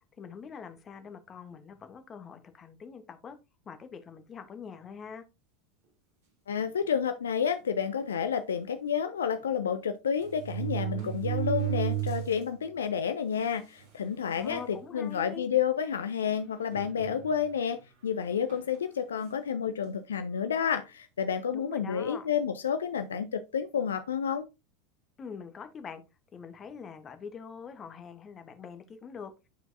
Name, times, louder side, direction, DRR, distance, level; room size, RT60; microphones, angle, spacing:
voice 1, 0.2-3.4 3.7-5.2 14.3-15.4 21.5-22.3 25.2-26.0 26.3-29.3, left 6 dB, 30° left, 1.1 m, -44 dB
voice 2, 6.5-24.5, left 7 dB, 80° left, 0.4 m, -30 dB
sound 1, 6.6-6.8 7.6-7.7 8.0-8.1 9.4-9.5 10.2-12.4 12.9-13.0 13.8-13.9 14.3-14.6 15.3-15.4 16.7-17.5 18.5-18.7, right 13 dB, 65° right, 2.8 m, -34 dB
10.0 x 4.5 x 2.6 m
figure-of-eight pair, 80°, 0 cm